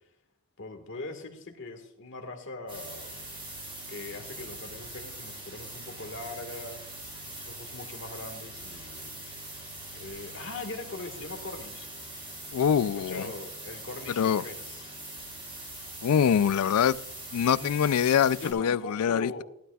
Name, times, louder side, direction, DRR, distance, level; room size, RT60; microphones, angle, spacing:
voice 1, 0.6-3.4 3.9-6.8 7.3-9.2 10.0-11.9 12.6-15.0 17.5-17.8 18.4-19.4, left 2 dB, 55° left, 4 dB, 1.7 m, -41 dB
sound 1, 2.7-18.5, right 1 dB, 25° right, 4.9 m, -42 dB
voice 2, 12.5-13.3 14.2-14.4 16.0-17.0 17.3-19.4, left 8 dB, 80° left, 18 dB, 0.4 m, -24 dB
16.0 x 12.0 x 2.3 m, 0.75 s
head